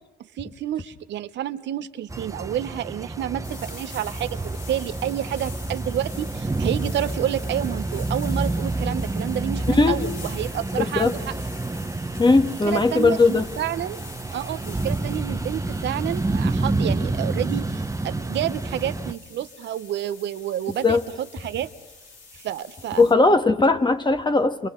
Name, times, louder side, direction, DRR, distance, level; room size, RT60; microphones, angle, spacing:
voice 1, 0.4-11.3 12.6-14.0 14.3-21.7 22.3-23.1, right 11 dB, 70° right, 12 dB, 0.8 m, -29 dB
sound 1, 2.1-19.1, right 2 dB, 15° right, 1.1 m, -29 dB
sound 2, 3.4-23.1, left 4 dB, 75° left, 4.1 m, -45 dB
voice 2, 9.7-10.0 10.9-11.1 12.2-13.5 20.8-21.0 23.0-24.7, left 3 dB, 25° left, 8 dB, 1.6 m, -18 dB
29.0 x 28.0 x 3.8 m, 1.1 s
supercardioid pair, 65°, 19 cm